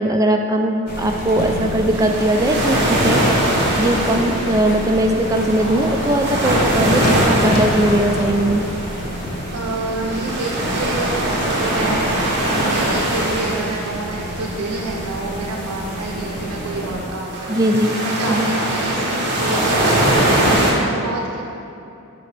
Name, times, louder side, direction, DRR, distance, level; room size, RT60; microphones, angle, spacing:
voice 1, 0.0-3.2 3.8-8.6 17.5-18.0 18.3-18.5, right 1 dB, 15° right, 3 dB, 0.3 m, -19 dB
sound 1, 0.9-17.1, left 1 dB, 40° left, 0.5 m, -29 dB
sound 2, 0.9-20.7, right 1 dB, 50° right, 1.1 m, -22 dB
voice 2, 9.5-12.3 12.5-17.6 18.0-21.4, right 2 dB, 85° right, 0 dB, 0.6 m, -28 dB
7.6 x 5.2 x 3.3 m, 2.7 s
head